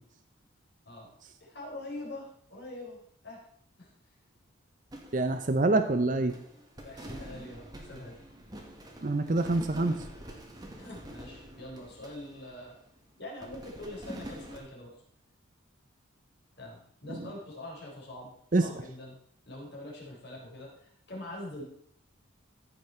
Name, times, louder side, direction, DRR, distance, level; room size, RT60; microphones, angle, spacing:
voice 1, 1.4-3.4 3.8-3.9 6.8-8.2 9.2-9.3 10.8-12.7 13.2-14.9 16.6-18.3 18.6-19.2 19.5-21.6, left 1 dB, 50° left, -3 dB, 4.0 m, -44 dB
sound 1, 4.9-6.0 6.3-13.0 13.4-14.6, equal, 20° right, 1.5 m, -46 dB
voice 2, 5.1-6.3 9.0-10.0 18.5-18.7, right 2 dB, 40° right, 8 dB, 0.6 m, -25 dB
14.5 x 6.2 x 4.4 m, 0.66 s
head